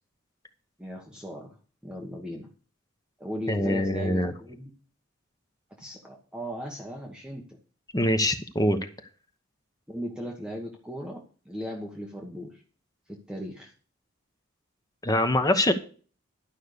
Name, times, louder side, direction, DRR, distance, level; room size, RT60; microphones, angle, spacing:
voice 1, 0.8-1.6 1.8-2.5 3.2-4.7 5.8-7.4 9.9-12.6 13.1-13.7, equal, 5° right, 0 dB, 1.3 m, -37 dB
voice 2, 3.5-4.3 7.9-8.8 15.0-15.7, left 1 dB, 15° left, 7 dB, 1.0 m, -24 dB
11.5 x 5.6 x 6.7 m, 0.39 s
head